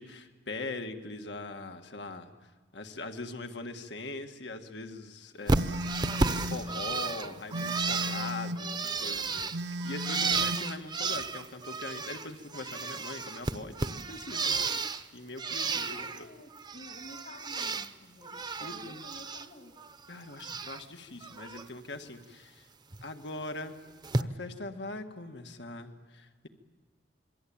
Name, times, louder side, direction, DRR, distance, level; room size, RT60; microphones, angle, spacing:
voice 1, 0.0-2.3 2.7-5.8 6.0-14.5 15.1-16.3 18.6-19.0 20.1-22.7 23.0-23.8 24.2-26.5, left 2 dB, 85° left, 6 dB, 1.8 m, -41 dB
voice 2, 5.4-5.8 15.7-19.8, left 1 dB, 60° left, 3 dB, 2.3 m, -51 dB
Bird, 5.5-12.3 12.5-15.0 15.4-16.2 16.6-17.9 18.2-19.5 19.8-20.8 21.2-21.6 22.9-23.0 24.0-24.2, right 3 dB, 25° right, 0.8 m, -33 dB
Telephone, 5.5-6.7 7.5-8.7 9.5-10.7, equal, 80° right, 1.0 m, -36 dB
27.0 x 23.0 x 8.8 m, 1.4 s
head